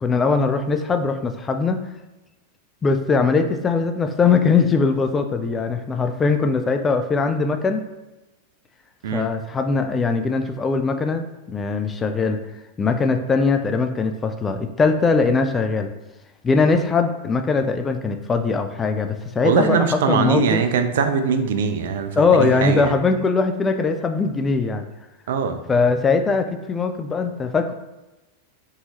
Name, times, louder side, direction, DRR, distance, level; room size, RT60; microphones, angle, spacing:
voice 1, 0.0-1.8 2.8-7.8 9.1-12.4 12.8-15.9 16.4-19.8 20.1-20.6 22.2-24.9 25.7-27.7, left 4 dB, 20° left, 7 dB, 0.4 m, -21 dB
voice 2, 19.4-22.9 25.3-25.6, right 6 dB, 60° right, 7 dB, 0.4 m, -21 dB
4.0 x 3.6 x 2.8 m, 1.0 s
figure-of-eight pair, 90°, 0 cm